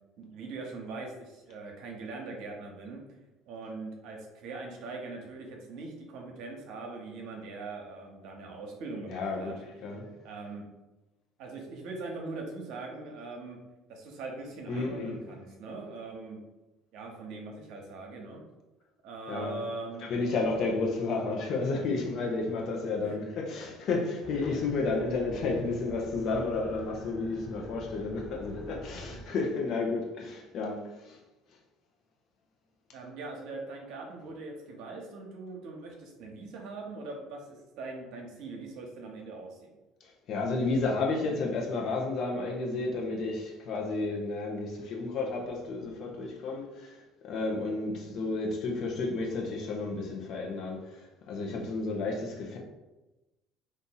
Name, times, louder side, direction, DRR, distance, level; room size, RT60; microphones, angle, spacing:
voice 1, 0.2-3.0 3.5-9.5 10.2-10.7 11.4-13.6 13.9-16.4 16.9-18.4 19.0-20.1 23.0-23.3 32.9-39.7, right 3 dB, 65° right, 0.9 m, -41 dB
voice 2, 9.1-9.5 9.8-10.1 14.7-15.2 19.3-19.6 20.0-31.2 40.0-52.6, left 3 dB, 60° left, 0.8 m, -32 dB
sound 1, 24.2-29.2, right 1 dB, 20° left, 1.3 m, -46 dB
2.6 x 2.6 x 3.9 m
hypercardioid pair, 70°, 0 cm